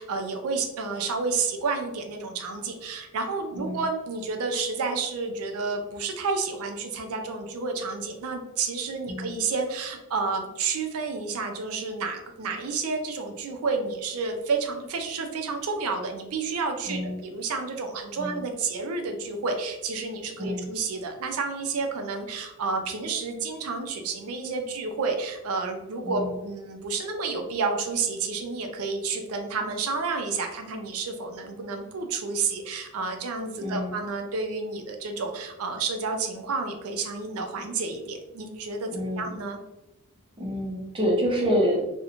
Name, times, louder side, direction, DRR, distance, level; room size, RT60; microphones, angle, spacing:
voice 1, 0.0-39.6, right 4 dB, 75° right, 4 dB, 0.4 m, -30 dB
voice 2, 3.5-3.9 9.1-9.3 16.8-17.2 18.2-18.4 20.4-20.7 26.0-26.4 33.6-34.0 38.9-39.3 40.4-41.8, equal, 25° right, -2 dB, 0.5 m, -28 dB
2.9 x 2.1 x 2.4 m, 0.98 s
head